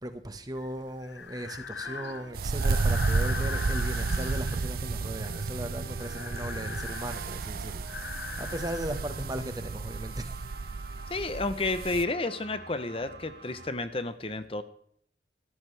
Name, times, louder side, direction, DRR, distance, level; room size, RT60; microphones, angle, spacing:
voice 1, 0.0-10.3, right 1 dB, 20° right, 8 dB, 1.4 m, -37 dB
Breathing, 0.6-9.6, left 6 dB, 85° left, 0.9 m, -41 dB
sound 1, 1.8-13.7, right 3 dB, 85° right, 1.9 m, -47 dB
sound 2, 2.3-12.0, right 4 dB, 55° right, 0.5 m, -32 dB
voice 2, 11.1-14.6, left 2 dB, 30° left, 11 dB, 0.8 m, -31 dB
17.5 x 14.0 x 3.4 m, 0.63 s
head